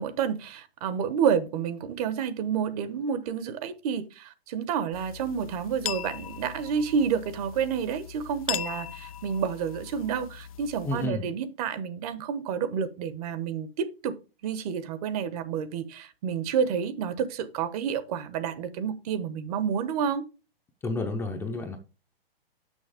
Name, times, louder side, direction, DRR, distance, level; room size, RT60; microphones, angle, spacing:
voice 1, 0.0-14.1 14.4-20.2, right 7 dB, 40° right, 1.0 m, -29 dB
sound 1, 4.9-11.1, left 11 dB, 40° left, 0.4 m, -39 dB
voice 2, 10.8-11.2 20.8-21.8, left 2 dB, 10° left, 0.7 m, -30 dB
6.4 x 6.4 x 4.9 m
hypercardioid pair, 140°, 30 cm